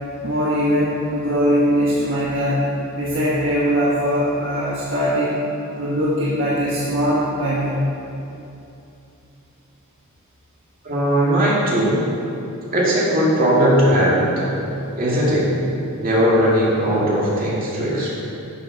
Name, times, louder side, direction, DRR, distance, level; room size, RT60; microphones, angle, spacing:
voice 1, 0.2-2.7 2.9-5.4 5.8-7.8, equal, 60° right, -7 dB, 1.5 m, -21 dB
voice 2, 10.8-12.0 12.7-14.6 14.9-15.5 16.0-18.2, equal, 45° right, -6 dB, 2.5 m, -18 dB
11.5 x 6.7 x 5.3 m, 2.8 s
head